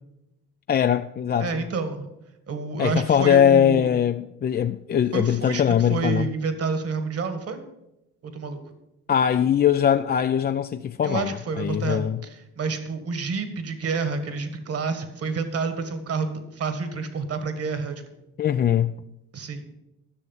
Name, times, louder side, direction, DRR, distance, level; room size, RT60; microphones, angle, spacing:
voice 1, 0.7-1.6 2.8-6.3 9.1-12.2 18.4-19.0, left 9 dB, 35° left, 0.4 m, -21 dB
voice 2, 1.4-2.1 2.5-3.9 5.1-5.6 5.9-7.6 8.2-8.6 11.0-16.3 16.5-18.0 19.3-19.6, right 4 dB, 50° right, 1.7 m, -29 dB
11.5 x 6.6 x 7.1 m
cardioid pair, 90°, 30 cm